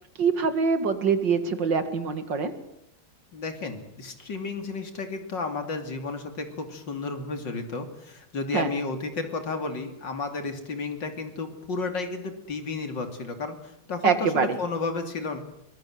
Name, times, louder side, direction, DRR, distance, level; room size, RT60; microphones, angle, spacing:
voice 1, 0.2-2.5 8.5-8.7 14.0-14.6, right 5 dB, 65° right, 10 dB, 2.6 m, -24 dB
voice 2, 3.3-15.4, left 3 dB, 65° left, 7 dB, 3.5 m, -32 dB
24.0 x 22.5 x 7.8 m, 0.74 s
omnidirectional pair, 2.1 m